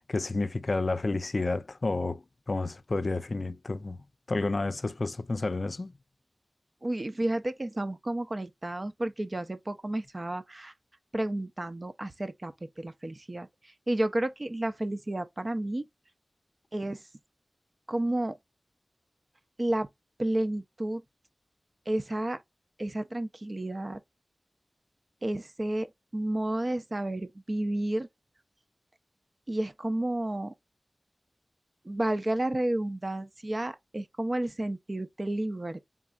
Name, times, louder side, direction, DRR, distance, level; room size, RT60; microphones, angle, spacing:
voice 1, 0.0-4.0 4.3-5.9, left 3 dB, 60° left, 0.5 m, -30 dB
voice 2, 6.8-10.7 11.1-15.9 16.7-17.0 17.9-18.4 19.6-19.9 20.2-21.0 21.9-22.4 22.8-24.0 25.2-28.1 29.5-30.5 31.8-35.8, right 1 dB, 40° right, 0.7 m, -31 dB
4.0 x 3.7 x 2.3 m
cardioid pair, 45°, 0 cm